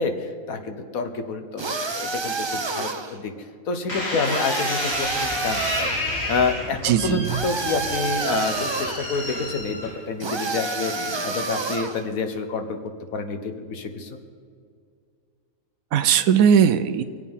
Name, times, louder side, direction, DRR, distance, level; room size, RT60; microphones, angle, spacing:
voice 1, 0.0-3.3 3.7-5.9 6.3-12.8 13.1-14.2, left 4 dB, 85° left, 7 dB, 1.6 m, -28 dB
sound 1, 1.6-3.2 4.2-6.0 7.2-9.1 10.2-12.0, right 3 dB, 30° right, 0.5 m, -28 dB
sound 2, 3.9-10.3 10.9-11.4, left 1 dB, 50° left, 2.7 m, -31 dB
sound 3, 4.8-9.9, left 1 dB, 35° left, 4.9 m, -40 dB
voice 2, 6.8-7.4 15.9-17.0, right 8 dB, 85° right, 10 dB, 1.0 m, -18 dB
24.0 x 8.2 x 5.6 m, 2.2 s
omnidirectional pair, 1.4 m